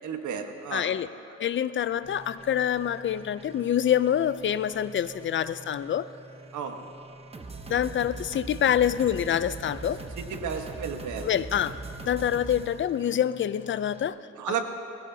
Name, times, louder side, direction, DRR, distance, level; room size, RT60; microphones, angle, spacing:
voice 1, 0.0-0.9 6.5-6.8 10.2-11.4 14.3-14.6, right 7 dB, 75° right, 5 dB, 1.3 m, -33 dB
voice 2, 0.7-1.1 1.4-6.1 7.7-10.0 11.2-11.8 12.0-14.2, left 10 dB, 40° left, 15 dB, 0.5 m, -26 dB
sound 1, 2.0-14.1, right 3 dB, 20° right, 1.0 m, -42 dB
20.5 x 17.0 x 2.8 m, 2.7 s
cardioid pair, 90°, 30 cm